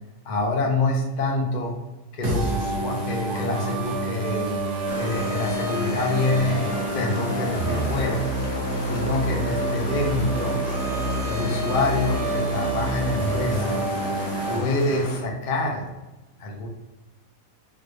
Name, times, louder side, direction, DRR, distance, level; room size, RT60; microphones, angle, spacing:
voice 1, 0.2-1.7 2.1-4.6 4.9-8.2 8.8-10.6 11.2-13.8 14.5-15.9 16.4-16.7, left 2 dB, 50° left, -1 dB, 0.6 m, -26 dB
sound 1, 2.2-14.6, right 2 dB, 60° right, 1.1 m, -27 dB
sound 2, 4.9-15.2, left 2 dB, 85° left, 1.2 m, -34 dB
3.7 x 2.3 x 3.2 m, 1.1 s
omnidirectional pair, 1.5 m